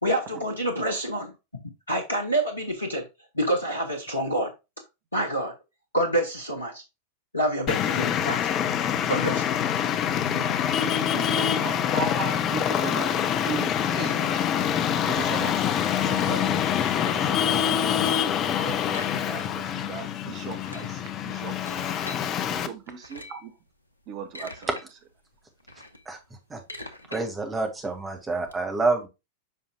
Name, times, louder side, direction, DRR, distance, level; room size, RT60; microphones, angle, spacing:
voice 1, 0.0-1.3 1.9-3.0 3.3-4.5 5.1-5.5 5.9-6.8 7.3-8.7 9.1-9.5, right 1 dB, 85° left, 1.1 m, -27 dB
Traffic noise roadway noise, 7.7-22.7, left 9 dB, 35° left, 0.7 m, -25 dB
voice 2, 9.9-16.6 17.0-17.7 18.4-21.5 22.5-23.5 24.1-24.7, right 7 dB, 35° right, 1.4 m, -38 dB
sound 1, 18.9-19.8 20.0-20.1 20.4-22.2 22.9-23.5 24.0-24.8 25.2-28.5, left 1 dB, 90° right, 1.0 m, -44 dB
voice 3, 27.1-29.1, right 3 dB, 15° right, 2.0 m, -27 dB
8.0 x 5.5 x 2.3 m
figure-of-eight pair, 90°, 0 cm